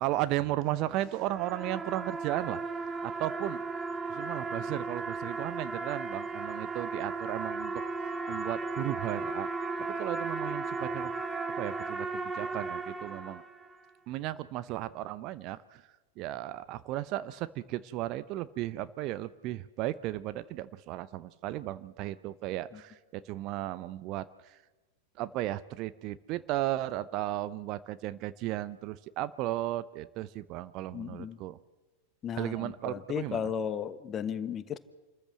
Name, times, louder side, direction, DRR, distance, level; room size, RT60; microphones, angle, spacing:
voice 1, 0.0-2.6 3.0-3.6 4.1-9.5 9.8-11.1 11.6-13.4 14.1-15.8 16.2-24.6 25.2-31.6 32.4-33.4, right 15 dB, 40° right, 15 dB, 0.7 m, -35 dB
sound 1, 1.0-13.7, right 3 dB, 15° right, 1.3 m, -35 dB
voice 2, 30.9-31.4 32.2-34.8, left 8 dB, 25° left, 14 dB, 1.2 m, -35 dB
27.5 x 13.5 x 7.6 m, 1.1 s
figure-of-eight pair, 90°, 0 cm